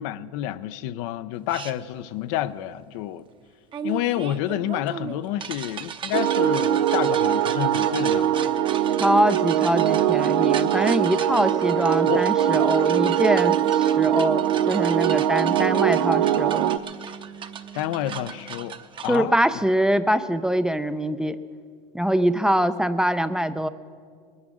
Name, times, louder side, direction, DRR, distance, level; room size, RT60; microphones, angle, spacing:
voice 1, 0.0-3.3 3.8-8.5 12.1-12.2 17.7-18.8 19.0-19.6, left 12 dB, 65° left, 0.6 m, -29 dB
sound 1, 1.5-1.7 3.7-19.2, right 7 dB, 30° right, 0.8 m, -37 dB
sound 2, 6.1-16.8, right 11 dB, 75° right, 0.5 m, -22 dB
voice 2, 9.0-16.8 19.1-21.4 21.9-23.7, equal, 5° right, 0.4 m, -23 dB
sound 3, 12.4-18.3, right 8 dB, 85° left, 2.2 m, -43 dB
20.5 x 9.6 x 6.3 m
supercardioid pair, 110°, 17 cm